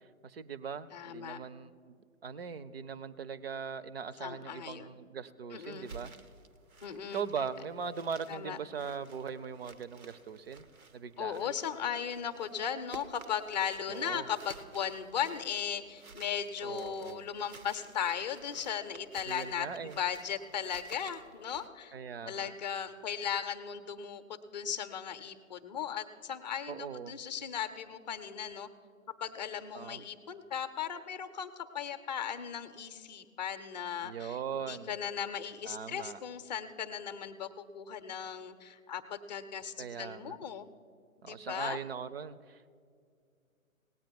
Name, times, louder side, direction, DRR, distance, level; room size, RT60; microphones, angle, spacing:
voice 1, 0.0-6.1 7.0-10.6 10.9-11.5 13.9-14.3 16.6-17.3 19.3-20.0 21.9-22.5 26.7-27.2 29.7-30.0 34.0-34.9 35.6-36.2 39.8-40.4 41.2-42.7, right 6 dB, 45° right, 14 dB, 0.6 m, -40 dB
voice 2, 0.9-1.4 4.2-4.9 5.5-5.9 6.8-7.3 8.3-8.6 11.2-21.9 22.2-28.7 29.2-40.7 41.2-41.8, left 8 dB, 30° left, 11 dB, 0.6 m, -37 dB
sound 1, 5.5-21.7, right 4 dB, 90° right, 1.0 m, -54 dB
18.0 x 8.7 x 5.2 m, 2.2 s
figure-of-eight pair, 140°, 41 cm